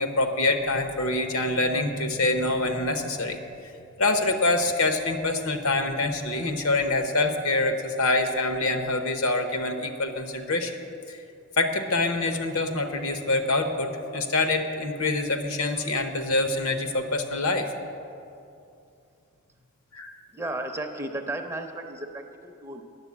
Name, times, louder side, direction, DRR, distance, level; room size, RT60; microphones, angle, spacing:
voice 1, 0.0-3.4 4.0-10.7 11.1-11.2 11.6-17.7 19.9-20.1, left 2 dB, 70° left, 6 dB, 0.9 m, -25 dB
voice 2, 20.3-22.8, right 1 dB, 10° right, 4 dB, 0.5 m, -34 dB
9.9 x 7.3 x 8.4 m, 2.6 s
head